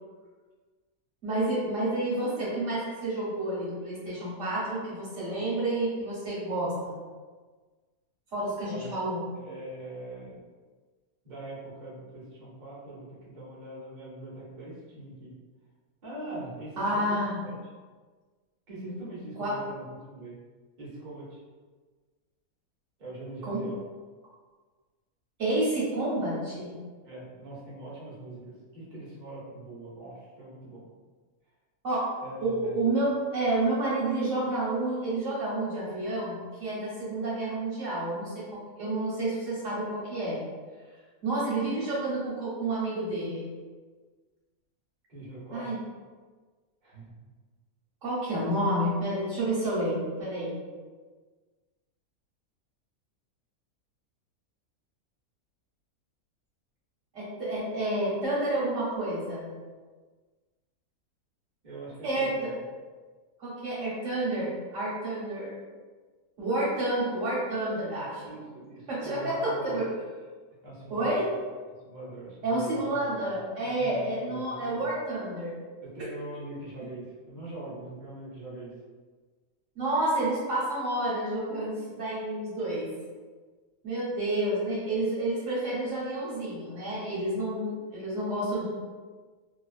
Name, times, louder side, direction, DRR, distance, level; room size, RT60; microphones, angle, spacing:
voice 1, 1.2-6.9 8.3-9.2 16.8-17.4 19.4-19.5 23.4-23.6 25.4-26.7 31.8-32.0 32.4-38.3 38.8-40.4 41.2-43.5 45.5-45.8 48.0-50.6 57.1-59.5 62.0-62.5 63.4-65.5 66.4-68.4 68.9-69.9 70.9-71.3 72.4-75.6 79.8-82.9 83.8-88.7, right 1 dB, 65° right, -7 dB, 1.0 m, -29 dB
voice 2, 8.7-9.1 9.3-10.4 11.2-15.3 16.0-17.6 18.7-20.4 20.8-21.4 23.0-23.8 27.0-30.9 32.2-32.8 45.1-45.7 46.8-47.2 61.6-62.6 68.2-69.9 70.6-71.2 71.8-73.3 73.6-74.9 75.8-78.7, right 2 dB, 40° right, -7 dB, 0.8 m, -42 dB
2.5 x 2.3 x 2.3 m, 1.4 s
omnidirectional pair, 1.6 m